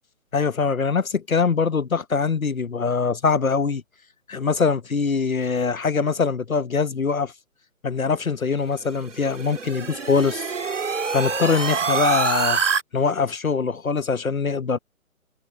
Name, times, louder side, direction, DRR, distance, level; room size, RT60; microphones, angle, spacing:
voice 1, 0.3-3.8 4.3-7.3 7.8-10.5 11.1-12.6 12.9-14.8, left 5 dB, 80° left, 1.2 m, -23 dB
sound 1, 8.8-12.8, right 5 dB, 60° right, 3.6 m, -25 dB
figure-of-eight pair, 145°, 41 cm